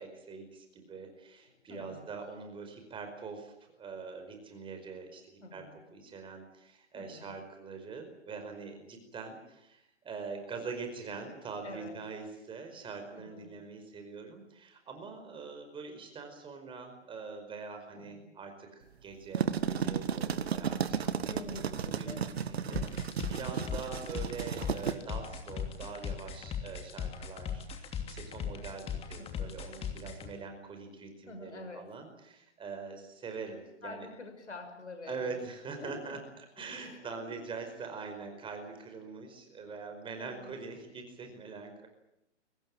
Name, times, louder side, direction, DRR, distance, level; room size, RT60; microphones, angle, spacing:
voice 1, 0.0-5.6 5.9-21.2 22.0-34.1 35.1-41.9, right 4 dB, 15° right, 5 dB, 5.0 m, -43 dB
voice 2, 1.5-2.1 5.4-5.8 6.9-7.3 11.6-11.9 13.1-13.5 17.9-18.3 21.3-22.4 29.2-29.6 31.3-31.9 33.8-35.3 35.8-36.2 36.8-37.5 38.3-38.7 40.2-40.6, left 3 dB, 75° left, 6 dB, 6.6 m, -47 dB
sound 1, 19.1-24.9, right 7 dB, 60° right, 1.7 m, -33 dB
sound 2, 22.7-30.3, left 7 dB, 15° left, 2.8 m, -38 dB
24.0 x 20.0 x 9.0 m, 0.80 s
figure-of-eight pair, 120°, 35 cm